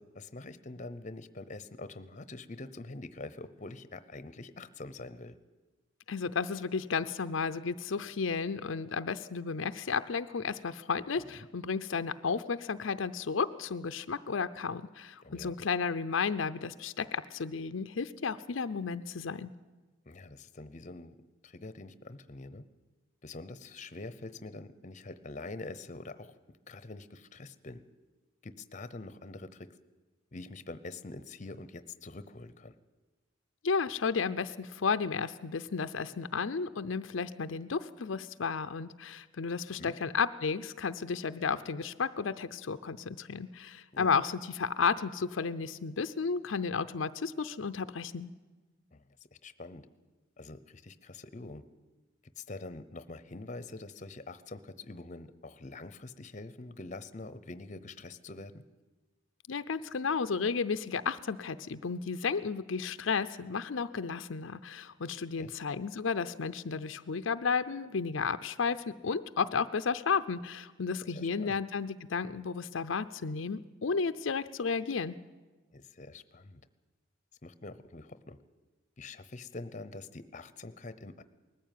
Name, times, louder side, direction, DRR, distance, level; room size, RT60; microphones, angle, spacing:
voice 1, 0.0-5.4 15.2-15.5 20.1-21.2 21.4-22.6 23.2-27.8 28.4-29.8 30.3-32.8 39.8-39.9 43.9-44.1 48.9-49.1 49.4-49.9 50.4-51.6 52.4-58.6 65.4-65.5 71.1-71.6 75.7-76.6 77.4-78.4 79.0-81.2, left 2 dB, 40° left, 14 dB, 0.8 m, -45 dB
voice 2, 6.1-19.5 33.6-48.3 59.5-75.1, left 5 dB, 80° left, 11 dB, 0.6 m, -33 dB
20.0 x 14.0 x 9.2 m, 1.2 s
head